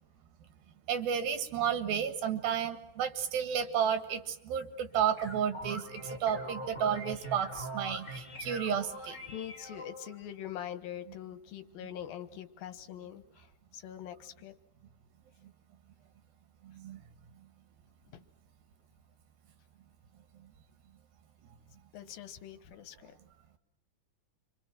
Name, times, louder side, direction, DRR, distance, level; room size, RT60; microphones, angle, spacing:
voice 1, 0.9-9.2 16.6-17.0, right 8 dB, 85° right, 8 dB, 3.6 m, -32 dB
sound 1, 4.9-10.2, equal, 20° left, 5.4 m, -43 dB
voice 2, 9.0-13.5 13.7-14.5 18.1-18.2 21.9-23.1, left 10 dB, 85° left, 10 dB, 3.1 m, -43 dB
29.0 x 25.0 x 6.2 m, 0.78 s
omnidirectional pair, 4.1 m